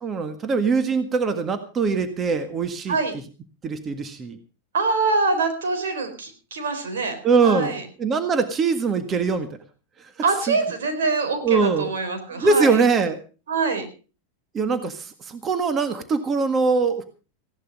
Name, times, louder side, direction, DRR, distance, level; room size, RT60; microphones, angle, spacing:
voice 1, 0.0-3.0 3.6-4.4 7.2-9.5 10.0-10.1 10.5-10.6 11.4-11.9 12.4-13.2 14.5-17.0, right 4 dB, 25° right, 9 dB, 1.7 m, -22 dB
voice 2, 4.7-7.1 7.4-7.8 10.2-12.8 13.5-13.9, right 3 dB, 80° right, 7 dB, 4.3 m, -24 dB
16.5 x 11.0 x 5.4 m, 0.36 s
hypercardioid pair, 110°, 0 cm